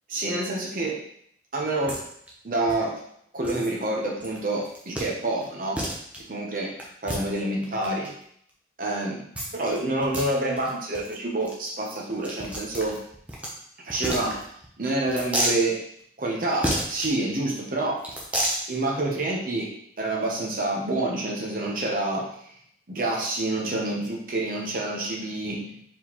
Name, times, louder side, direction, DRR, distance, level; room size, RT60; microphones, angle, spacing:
voice 1, 0.1-1.0 1.5-2.0 2.4-3.0 3.3-5.8 6.3-6.7 7.0-8.1 8.8-9.2 9.5-13.0 13.8-14.4 14.8-15.8 16.2-18.0 18.7-19.7 20.0-22.3 22.9-25.8, right 2 dB, 50° right, -2 dB, 0.8 m, -27 dB
sound 1, 1.9-2.0 2.3-2.4 2.7-2.8 3.4-3.7 4.2-4.4 4.6-5.1 5.4-5.5 5.7-6.2 6.8-8.1 9.3-9.8 10.0-10.3 10.6-10.7 10.9-11.1 11.4-11.5 11.8-13.5 13.9-14.7 15.1-15.6 16.6-17.1 18.0-18.6, right 1 dB, 10° right, 0.7 m, -30 dB
4.5 x 3.6 x 3.0 m, 0.68 s
head